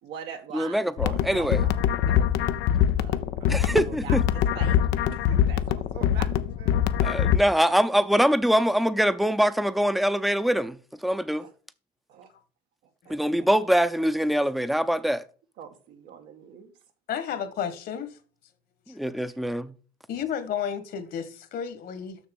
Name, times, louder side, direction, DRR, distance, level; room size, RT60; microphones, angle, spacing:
voice 1, 0.0-2.6 2.9-3.6 3.8-4.8 5.1-6.7 11.4-11.5 12.1-12.3 13.0-13.5 15.6-16.7, right 7 dB, 90° right, 1.9 m, -43 dB
voice 2, 0.5-1.6 3.5-4.2 7.0-11.4 13.1-15.3 18.9-19.7, equal, ahead, 0.6 m, -24 dB
sound 1, 1.0-7.4, left 10 dB, 90° left, 0.7 m, -23 dB
voice 3, 17.1-18.1 18.9-19.0 20.1-22.2, left 8 dB, 65° left, 1.7 m, -32 dB
7.0 x 6.3 x 7.1 m
cardioid pair, 110°, 17 cm